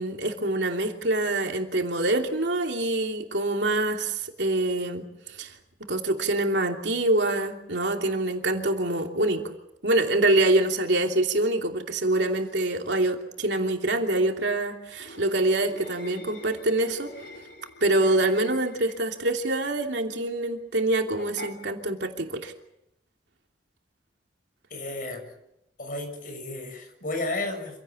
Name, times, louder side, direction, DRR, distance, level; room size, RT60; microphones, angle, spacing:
voice 1, 0.0-5.1 5.4-5.5 5.9-9.4 9.8-17.1 17.8-22.5, right 2 dB, 80° right, 3 dB, 3.0 m, -25 dB
sound 1, 14.9-19.1 21.2-21.6, left 1 dB, 75° left, 4.7 m, -44 dB
voice 2, 24.7-25.2 25.8-27.8, left 2 dB, 50° left, 5 dB, 6.8 m, -33 dB
27.5 x 17.0 x 8.6 m, 0.83 s
head